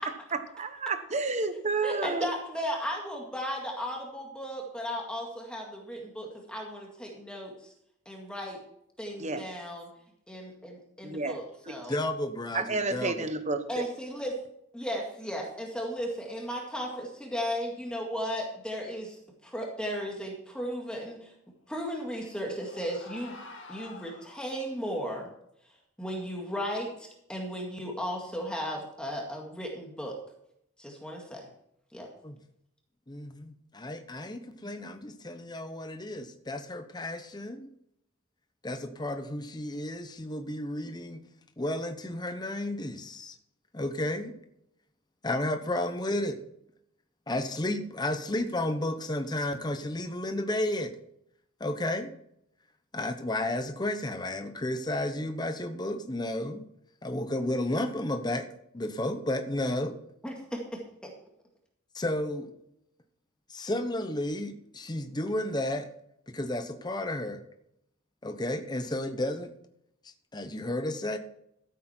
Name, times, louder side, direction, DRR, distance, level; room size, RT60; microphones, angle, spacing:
voice 1, 0.5-2.3 9.2-9.4 11.0-11.4 11.7-11.8 12.5-13.6, right 3 dB, 35° right, 8 dB, 1.0 m, -30 dB
voice 2, 1.8-7.7 8.1-8.6 9.0-9.9 10.3-11.9 13.7-14.3 14.7-21.3 21.7-23.4 23.7-25.3 26.0-30.2 30.8-31.5 31.9-32.1 34.6-34.7 60.2-61.1, equal, 5° left, 0 dB, 2.0 m, -35 dB
voice 3, 11.9-13.3 32.2-32.4 33.1-37.7 38.6-41.2 41.6-43.4 43.7-44.3 45.2-46.4 47.3-51.0 51.6-52.1 52.9-56.6 57.0-58.5 58.7-59.9 61.9-62.5 63.5-65.9 66.3-67.4 68.2-69.5 70.3-71.2, left 1 dB, 20° left, 8 dB, 0.9 m, -32 dB
sound 1, 22.0-24.8, left 3 dB, 60° left, 2.0 m, -49 dB
14.5 x 8.3 x 4.4 m, 0.75 s
head